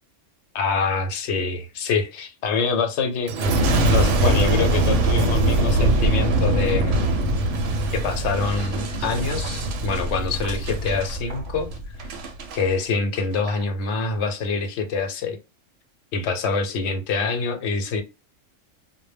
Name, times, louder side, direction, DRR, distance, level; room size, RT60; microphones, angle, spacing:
voice 1, 0.5-3.3 3.9-7.1 7.9-11.7 12.0-12.1 12.5-15.4 16.1-18.0, left 4 dB, 65° left, 0.8 m, -25 dB
Boom, 3.3-12.6 13.2-13.6, right 1 dB, 75° right, 0.9 m, -22 dB
2.2 x 2.0 x 3.2 m
omnidirectional pair, 1.3 m